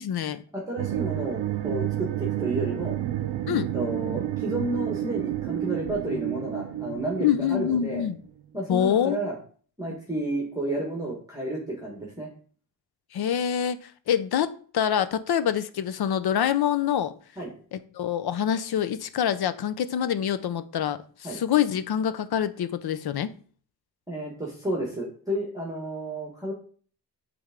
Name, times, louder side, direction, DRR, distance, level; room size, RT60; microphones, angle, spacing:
voice 1, 0.0-0.4 3.5-3.7 7.2-8.2 8.7-9.3 13.1-17.1 17.7-23.3, left 9 dB, 65° left, 13 dB, 0.6 m, -26 dB
voice 2, 0.5-3.0 3.5-8.0 8.5-9.4 9.8-12.3 17.4-17.5 21.2-21.4 24.1-26.5, right 1 dB, 10° right, -2 dB, 1.5 m, -31 dB
sound 1, 0.8-8.3, right 13 dB, 90° right, 0.6 m, -30 dB
8.6 x 3.5 x 3.7 m, 0.44 s
wide cardioid pair, 145°, 42 cm